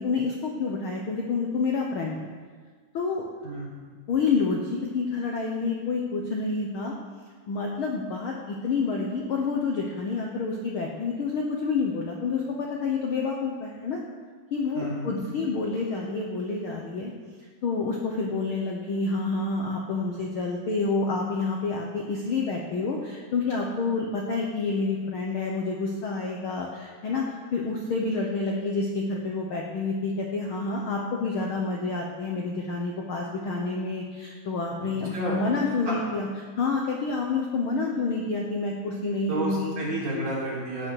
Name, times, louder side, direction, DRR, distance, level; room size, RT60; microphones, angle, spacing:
voice 1, 0.0-2.2 2.9-3.3 4.1-6.9 7.5-14.0 14.5-17.1 17.6-36.3 36.6-39.7, left 4 dB, 60° left, 0 dB, 1.4 m, -28 dB
voice 2, 14.7-15.2 35.1-35.5 35.9-36.0 39.3-40.9, right 1 dB, 55° right, -7 dB, 5.0 m, -30 dB
16.0 x 6.3 x 6.6 m, 1.5 s
omnidirectional pair, 3.6 m